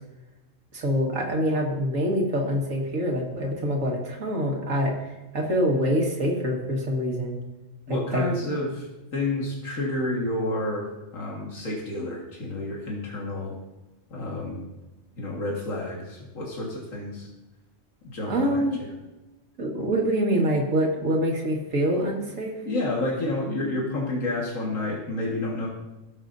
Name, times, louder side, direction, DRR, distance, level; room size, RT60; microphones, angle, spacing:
voice 1, 0.7-7.4 7.9-8.3 18.3-18.8 19.6-22.6, equal, 85° right, 0 dB, 2.1 m, -25 dB
voice 2, 7.9-13.5 14.1-14.6 15.2-17.3 18.0-18.9 22.6-25.7, left 2 dB, 85° left, -4 dB, 2.1 m, -30 dB
16.5 x 7.4 x 2.6 m, 1.1 s
omnidirectional pair, 1.3 m